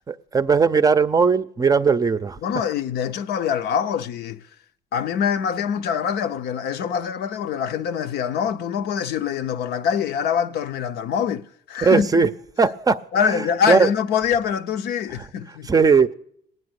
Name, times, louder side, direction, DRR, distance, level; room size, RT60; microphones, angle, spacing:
voice 1, 0.1-2.4 11.8-12.3 12.6-13.9 15.7-16.1, right 5 dB, 20° right, 0.5 m, -18 dB
voice 2, 2.4-4.4 4.9-12.1 13.1-15.7, left 8 dB, 75° left, 0.7 m, -24 dB
19.5 x 9.2 x 8.0 m
cardioid pair, 110°, 17 cm